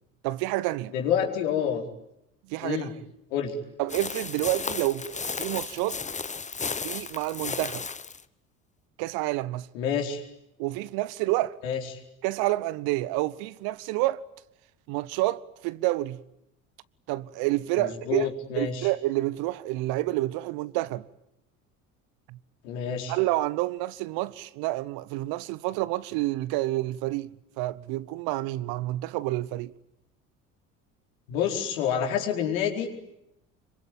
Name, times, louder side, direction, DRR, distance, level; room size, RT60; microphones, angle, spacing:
voice 1, 0.2-0.9 2.5-2.9 3.8-6.0 6.8-7.9 9.0-9.7 10.6-11.6 12.2-14.2 14.9-16.2 17.1-18.3 18.6-21.1 22.3-22.4 23.1-27.3 27.6-29.7, right 18 dB, 60° right, 1.1 m, -29 dB
voice 2, 0.9-1.8 2.6-2.9 3.3-3.5 9.7-10.2 11.6-11.8 17.8-18.9 22.6-23.2 31.3-32.9, left 8 dB, 70° left, 4.5 m, -28 dB
sound 1, 3.9-8.2, left 5 dB, 15° left, 1.1 m, -34 dB
26.0 x 24.0 x 9.1 m
hypercardioid pair, 60°, 41 cm